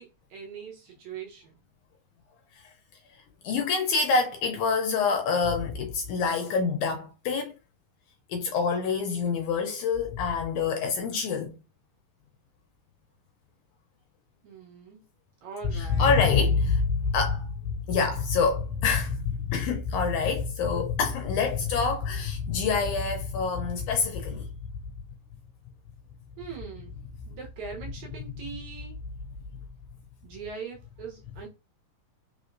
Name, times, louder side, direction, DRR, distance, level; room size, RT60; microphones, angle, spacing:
voice 1, 0.0-1.6 14.4-15.0 15.4-16.1 26.4-26.9 27.3-29.0 30.2-31.5, right 6 dB, 65° right, 2.1 m, -41 dB
voice 2, 3.4-7.5 8.3-11.6 15.6-24.8, left 5 dB, 80° left, 1.9 m, -26 dB
5.0 x 3.5 x 2.5 m
omnidirectional pair, 4.0 m